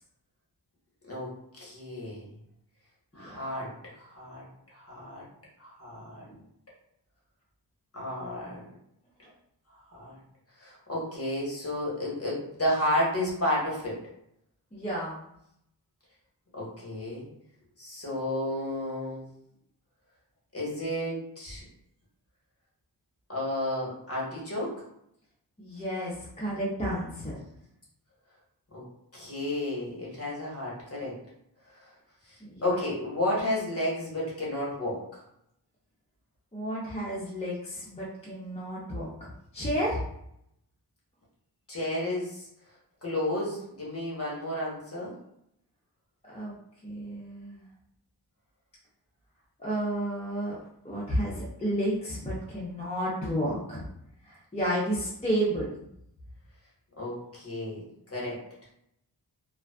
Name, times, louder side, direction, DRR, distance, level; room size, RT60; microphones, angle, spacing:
voice 1, 1.0-2.2 3.1-5.3 5.6-6.3 7.9-8.6 9.9-10.2 10.6-14.0 16.5-17.3 17.8-19.2 20.5-21.6 23.3-24.7 28.7-28.9 29.1-31.1 31.7-31.9 32.2-35.0 41.7-42.5 43.0-45.1 57.0-57.8 58.1-58.4, left 1 dB, 35° left, -5 dB, 1.1 m, -32 dB
voice 2, 14.7-15.2 25.6-27.4 32.4-32.7 36.5-40.0 46.3-46.5 46.8-47.6 49.6-50.6 50.8-53.8 54.3-55.7, equal, 15° left, -7 dB, 0.6 m, -31 dB
2.4 x 2.3 x 2.3 m, 0.77 s
wide cardioid pair, 80°, 40 cm